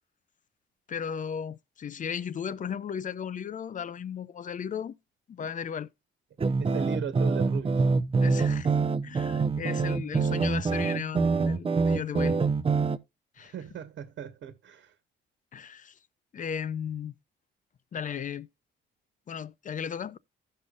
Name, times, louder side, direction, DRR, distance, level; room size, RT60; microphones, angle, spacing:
voice 1, 0.9-4.9 5.3-5.9 8.2-8.7 9.0-12.4 13.4-13.5 15.5-15.9 16.3-17.1 17.9-18.5 19.3-20.2, left 7 dB, 40° left, 0.6 m, -35 dB
sound 1, 6.4-13.0, right 4 dB, 30° right, 0.7 m, -25 dB
voice 2, 6.6-7.9 13.4-14.9, right 7 dB, 70° right, 1.4 m, -38 dB
16.0 x 5.6 x 2.4 m
cardioid pair, 90°, 20 cm